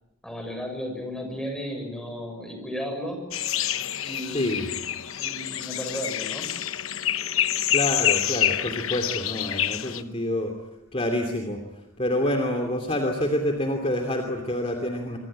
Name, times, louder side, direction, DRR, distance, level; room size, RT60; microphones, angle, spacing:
voice 1, 0.2-3.3 4.0-4.8 5.2-6.6, equal, 5° left, 4 dB, 6.9 m, -34 dB
sound 1, 3.3-10.0, left 11 dB, 65° left, 1.1 m, -27 dB
voice 2, 4.3-4.7 7.7-10.5 10.9-11.6 12.0-15.2, left 1 dB, 25° left, 4 dB, 2.8 m, -27 dB
26.0 x 25.0 x 8.9 m, 0.96 s
head